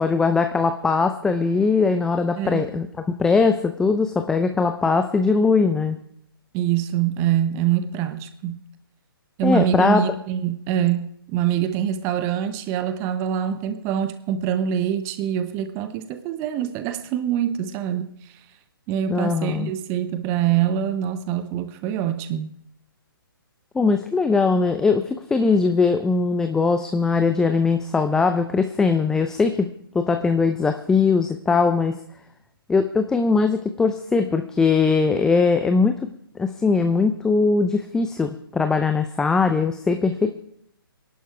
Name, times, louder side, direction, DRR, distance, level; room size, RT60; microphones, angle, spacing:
voice 1, 0.0-6.0 9.4-10.0 19.1-19.7 23.7-29.7 29.9-31.9 32.7-35.9 36.4-40.3, left 4 dB, 5° left, 0.5 m, -20 dB
voice 2, 2.4-2.7 6.5-8.6 9.4-18.1 18.9-22.5, right 9 dB, 20° right, 0.8 m, -24 dB
24.5 x 11.5 x 3.4 m
figure-of-eight pair, 135°, 12 cm